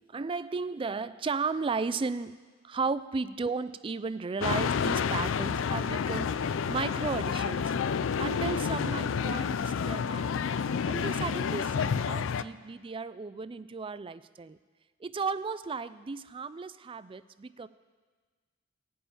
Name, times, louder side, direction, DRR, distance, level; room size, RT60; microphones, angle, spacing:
voice 1, 0.0-2.4 2.6-10.4 10.9-14.6 15.0-17.7, right 4 dB, 25° right, 15 dB, 0.4 m, -35 dB
sound 1, 4.4-12.4, left 6 dB, 75° left, 0.4 m, -29 dB
16.5 x 5.5 x 8.7 m, 1.5 s
head